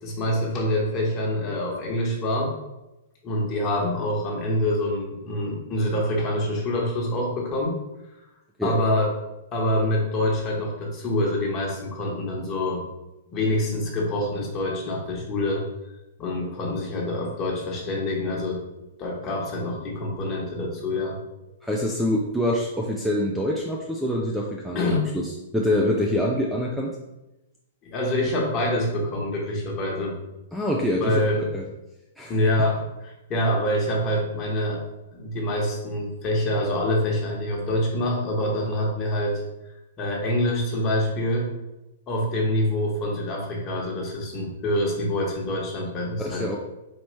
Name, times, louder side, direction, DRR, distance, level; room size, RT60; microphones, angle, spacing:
voice 1, 0.0-2.5 3.2-7.8 8.6-9.1 9.5-12.8 13.3-15.6 16.2-18.6 19.0-21.2 24.7-25.0 27.8-30.1 31.0-31.5 32.3-34.8 35.1-39.4 40.0-41.5 42.1-46.6, left 1 dB, 30° left, -1 dB, 1.2 m, -26 dB
voice 2, 21.6-27.0 30.5-31.2 31.5-31.6 32.2-32.7 46.2-46.6, left 1 dB, ahead, -2 dB, 0.4 m, -25 dB
4.2 x 3.0 x 3.3 m, 0.96 s
figure-of-eight pair, 110°, 0 cm